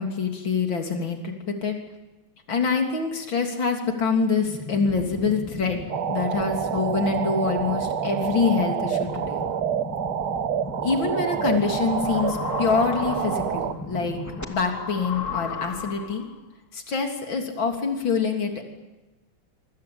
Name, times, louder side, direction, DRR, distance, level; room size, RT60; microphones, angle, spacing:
voice 1, 0.0-1.8 2.5-5.8 6.1-9.4 10.8-14.2 14.5-16.3 16.7-18.6, left 5 dB, 65° left, 3 dB, 4.0 m, -25 dB
sound 1, 4.4-14.4, left 2 dB, 10° left, 2.3 m, -37 dB
sound 2, 5.9-13.7, right 9 dB, 75° right, 1.9 m, -28 dB
sound 3, 10.6-16.4, left 6 dB, 45° left, 1.3 m, -36 dB
27.0 x 24.5 x 8.8 m, 1.1 s
omnidirectional pair, 2.3 m